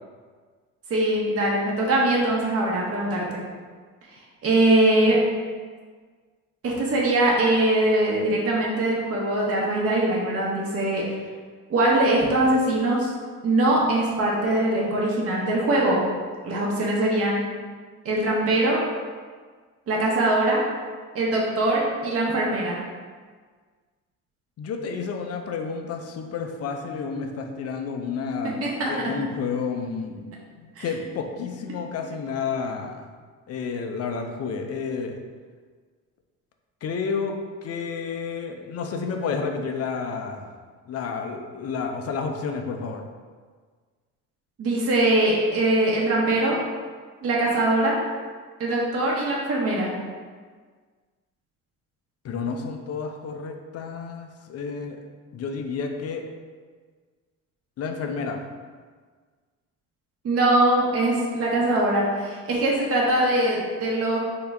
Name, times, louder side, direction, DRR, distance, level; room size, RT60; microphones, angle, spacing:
voice 1, 0.9-3.4 4.4-5.2 6.6-11.0 11.7-13.1 13.4-16.0 16.4-17.4 18.0-18.8 19.9-20.6 21.1-22.8 28.6-28.9 30.8-30.9 44.6-46.6 47.2-48.0 48.6-49.9 60.2-64.2, right 1 dB, 40° right, -3 dB, 0.8 m, -22 dB
voice 2, 24.6-30.3 30.6-33.1 33.5-35.2 36.8-40.5 40.9-43.0 52.2-55.0 55.3-56.2 57.8-58.4, left 5 dB, 40° left, 4 dB, 0.5 m, -30 dB
3.7 x 2.1 x 3.4 m, 1.6 s
hypercardioid pair, 55°, 37 cm